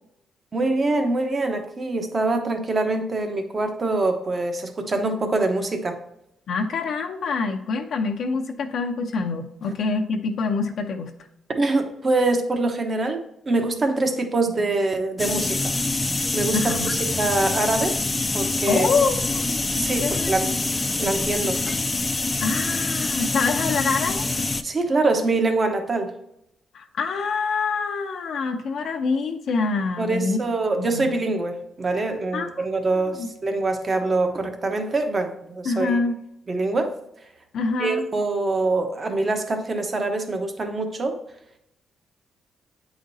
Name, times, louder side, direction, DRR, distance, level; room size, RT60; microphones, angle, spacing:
voice 1, 0.5-6.0 11.6-13.2 13.5-15.7 16.3-17.9 18.3-18.9 19.8-20.5 21.0-21.6 24.6-26.1 30.0-36.0 36.5-36.9 37.8-41.2, right 2 dB, 35° right, 5 dB, 1.0 m, -24 dB
voice 2, 6.5-11.1 16.5-16.9 18.7-20.3 20.9-21.1 22.4-24.3 26.7-30.4 30.8-31.1 32.3-32.6 33.0-33.3 35.6-36.2 37.5-38.1, left 4 dB, 65° left, 2 dB, 0.7 m, -26 dB
sound 1, 15.2-24.6, left 2 dB, 20° left, 0.5 m, -25 dB
8.5 x 5.0 x 2.7 m, 0.81 s
cardioid pair, 105°, 0 cm